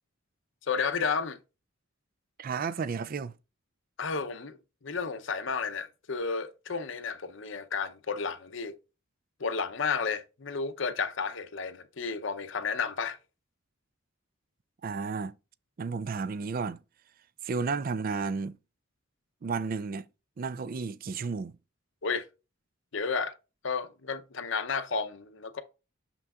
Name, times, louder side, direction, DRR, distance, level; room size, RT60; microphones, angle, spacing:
voice 1, 0.6-1.4 4.0-4.6 4.8-8.8 9.4-13.2 22.0-22.3 22.9-23.3 23.6-25.6, left 5 dB, 65° left, 0.7 m, -32 dB
voice 2, 2.4-3.3 14.8-15.3 15.8-16.8 17.4-18.6 19.4-20.1 20.4-21.5, right 4 dB, 45° right, 0.3 m, -32 dB
6.8 x 6.0 x 2.4 m
head